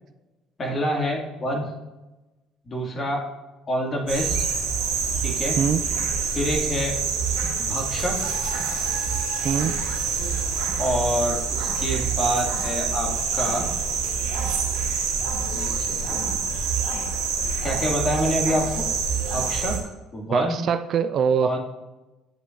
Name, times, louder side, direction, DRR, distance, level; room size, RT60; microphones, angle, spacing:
voice 1, 0.6-1.6 2.7-3.3 3.7-4.5 5.2-5.6 6.3-7.0 7.6-8.3 10.8-13.7 15.5-16.4 17.6-18.9 19.3-19.8 20.1-20.6 21.4-21.6, equal, 40° left, 2.2 m, -27 dB
sound 1, 4.1-19.8, right 5 dB, 75° right, 2.0 m, -26 dB
voice 2, 9.4-9.7 20.3-21.5, right 7 dB, 55° right, 0.4 m, -23 dB
10.0 x 7.7 x 2.6 m
hypercardioid pair, 60°, 0 cm